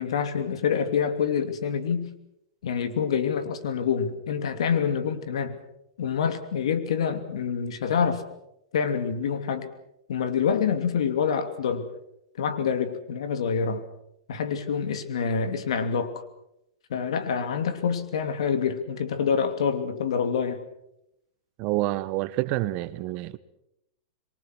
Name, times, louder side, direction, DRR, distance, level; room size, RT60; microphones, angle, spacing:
voice 1, 0.0-2.1 2.6-5.6 6.0-8.2 8.7-9.7 10.1-11.9 12.4-13.9 14.3-16.2 16.9-20.6, left 6 dB, 80° left, 9 dB, 2.8 m, -26 dB
voice 2, 21.6-23.4, right 17 dB, 40° right, 14 dB, 1.1 m, -28 dB
26.5 x 23.0 x 6.3 m, 0.82 s
supercardioid pair, 150°, 3 cm